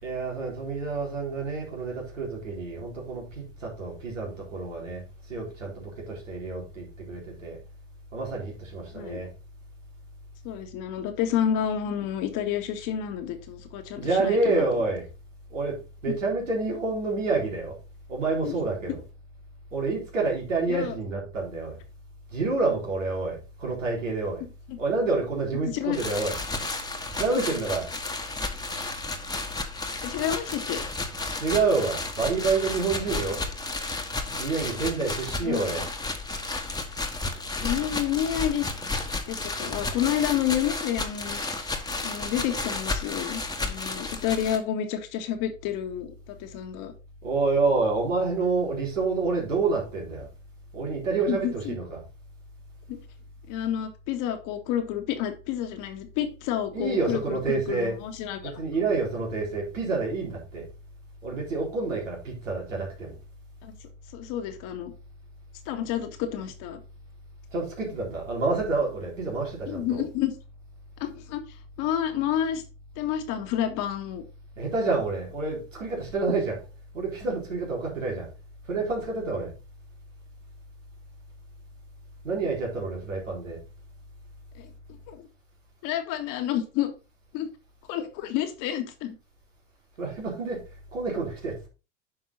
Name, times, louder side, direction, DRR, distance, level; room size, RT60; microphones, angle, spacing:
voice 1, 0.0-5.0 5.3-7.6 8.1-9.3 14.0-15.1 15.5-17.8 18.1-19.0 19.7-21.8 22.3-24.4 24.8-26.4 27.2-27.9 31.3-33.4 34.4-35.9 47.2-50.3 50.7-52.0 56.7-58.0 58.4-60.7 61.2-63.2 67.5-70.0 74.6-76.6 76.9-78.3 78.7-79.5 82.2-83.6 90.0-90.6 90.9-91.7, right 3 dB, 90° right, 3.9 m, -28 dB
voice 2, 10.4-14.6 16.1-16.2 18.4-18.6 20.7-21.0 24.7-24.8 25.6-26.0 30.0-30.8 35.4-35.6 37.6-38.7 39.3-41.4 42.0-46.9 51.3-51.7 52.9-53.0 53.5-58.5 63.6-63.8 64.1-64.9 65.7-66.8 69.7-70.3 71.0-71.4 71.8-72.6 73.0-74.2 84.6-84.7 85.1-85.3 85.8-86.9 87.3-87.5 87.9-89.1, left 10 dB, 55° left, 1.9 m, -29 dB
sound 1, 25.9-44.6, left 3 dB, 10° left, 1.6 m, -32 dB
9.6 x 5.4 x 4.1 m
hypercardioid pair, 80°, 37 cm